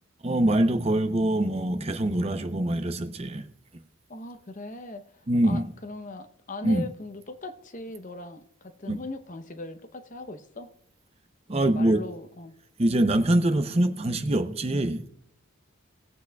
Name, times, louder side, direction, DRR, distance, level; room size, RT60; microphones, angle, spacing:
voice 1, 0.2-3.5 5.3-5.7 6.6-6.8 8.9-9.0 11.5-12.0 12.8-15.1, right 1 dB, 30° right, 0.6 m, -24 dB
voice 2, 4.1-10.7 11.6-12.5, left 2 dB, 35° left, 0.7 m, -40 dB
19.5 x 8.2 x 2.3 m
head